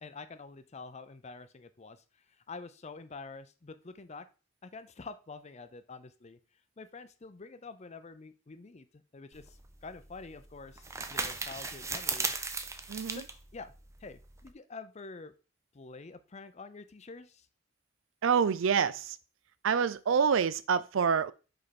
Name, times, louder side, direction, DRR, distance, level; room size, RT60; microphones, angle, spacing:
voice 1, 0.0-2.0 2.5-4.3 4.6-6.4 6.8-12.4 13.1-13.2 13.5-13.7 14.0-15.3 15.7-17.5, left 4 dB, 35° left, 0.5 m, -47 dB
sound 1, 9.3-14.5, right 4 dB, 15° right, 0.5 m, -37 dB
voice 2, 12.9-13.2 18.2-19.2 19.6-21.3, right 6 dB, 75° right, 0.4 m, -27 dB
5.2 x 4.4 x 4.2 m
head